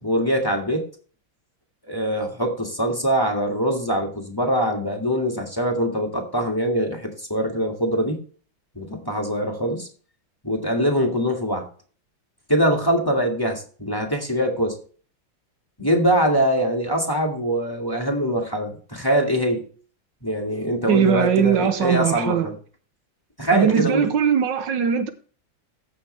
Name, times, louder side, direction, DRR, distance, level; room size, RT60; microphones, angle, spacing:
voice 1, 0.0-0.9 1.8-8.2 8.8-9.9 10.4-11.7 12.5-14.8 15.8-19.7 20.2-22.6 23.4-24.1, equal, 10° left, 1.8 m, -23 dB
voice 2, 20.9-22.5 23.5-25.1, right 8 dB, 70° right, 1.4 m, -20 dB
14.5 x 6.5 x 3.2 m
omnidirectional pair, 2.1 m